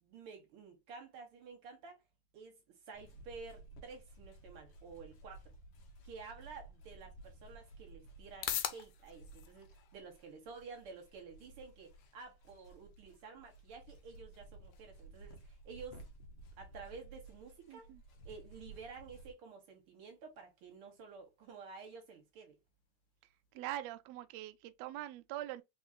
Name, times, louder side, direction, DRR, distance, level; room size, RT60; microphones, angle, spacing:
voice 1, 0.0-2.0 2.3-5.5 6.0-16.0 16.6-17.9 18.2-22.6, right 5 dB, 60° right, 1.6 m, -52 dB
sound 1, 2.9-19.3, right 2 dB, 65° left, 1.2 m, -56 dB
sound 2, 7.0-23.9, left 12 dB, 80° left, 2.0 m, -50 dB
voice 2, 17.7-18.0 23.5-25.6, right 13 dB, 80° right, 1.5 m, -43 dB
4.3 x 3.9 x 2.5 m
omnidirectional pair, 3.5 m